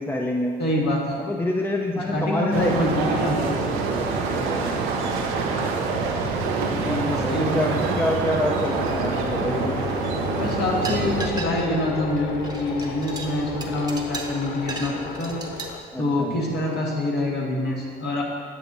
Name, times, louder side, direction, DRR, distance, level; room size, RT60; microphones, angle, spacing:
voice 1, 0.0-0.5 1.2-2.7 4.3-4.8 6.8-9.8 15.9-16.4, left 1 dB, 10° left, 0 dB, 0.7 m, -27 dB
voice 2, 0.6-1.2 1.9-3.7 6.8-7.9 10.3-14.9 15.2-15.4 16.0-18.2, left 1 dB, 55° left, -3 dB, 1.6 m, -26 dB
sound 1, 2.5-11.3, right 4 dB, 85° right, 0.7 m, -26 dB
sound 2, 8.6-15.8, left 5 dB, 90° left, 0.5 m, -34 dB
sound 3, 9.0-9.6 9.8-11.9 12.2-15.7, right 3 dB, 20° right, 1.0 m, -36 dB
8.2 x 6.8 x 2.7 m, 2.1 s
supercardioid pair, 65°, 20 cm